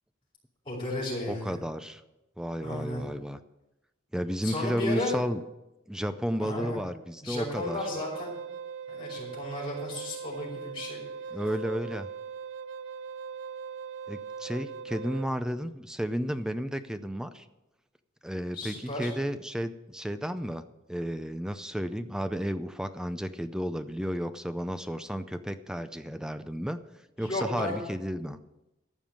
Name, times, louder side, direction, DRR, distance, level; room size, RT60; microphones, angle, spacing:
voice 1, 0.6-1.6 2.6-3.0 4.4-5.1 6.4-6.8 7.2-8.3 8.9-11.0 18.5-19.1 27.2-27.8, left 1 dB, 25° left, -4 dB, 4.9 m, -34 dB
voice 2, 1.3-2.0 2.4-3.4 4.1-5.4 5.9-7.8 11.3-12.1 14.1-17.5 18.2-20.6 20.9-26.8 27.2-28.4, equal, 5° right, 10 dB, 0.4 m, -32 dB
Wind instrument woodwind instrument, 7.4-15.3, right 6 dB, 60° right, 0.5 m, -40 dB
14.0 x 5.5 x 8.7 m, 0.96 s
head